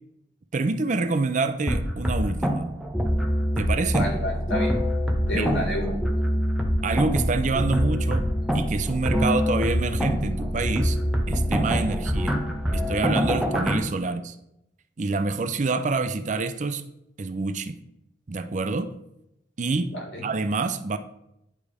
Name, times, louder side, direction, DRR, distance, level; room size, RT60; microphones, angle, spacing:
voice 1, 0.5-2.7 3.6-4.1 5.3-5.6 6.8-11.0 11.3-12.4 12.7-14.4 15.0-16.8 17.2-17.8 18.3-18.9 19.6-20.0 20.2-21.0, right 3 dB, 40° right, 10 dB, 0.4 m, -27 dB
sound 1, 1.7-13.8, equal, 5° right, 0.7 m, -25 dB
voice 2, 3.9-4.8 5.3-5.9 12.6-12.9 19.9-20.2, equal, 80° left, -2 dB, 2.5 m, -30 dB
10.0 x 3.4 x 4.9 m, 0.81 s
head